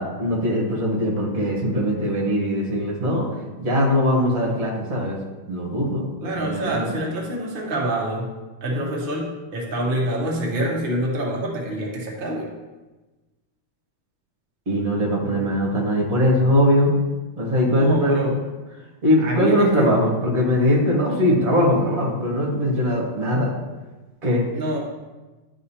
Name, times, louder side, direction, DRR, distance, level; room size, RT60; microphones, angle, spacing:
voice 1, 0.0-3.3 3.6-5.2 5.5-6.9 14.7-16.9 17.4-18.3 19.0-23.5 24.2-24.5, equal, 45° right, -3 dB, 1.5 m, -21 dB
voice 2, 6.2-8.3 8.6-12.5 15.3-15.5 17.6-18.4 19.2-19.9 24.5-24.8, right 1 dB, 65° right, -2 dB, 0.5 m, -26 dB
10.5 x 3.5 x 2.8 m, 1.2 s
omnidirectional pair, 2.4 m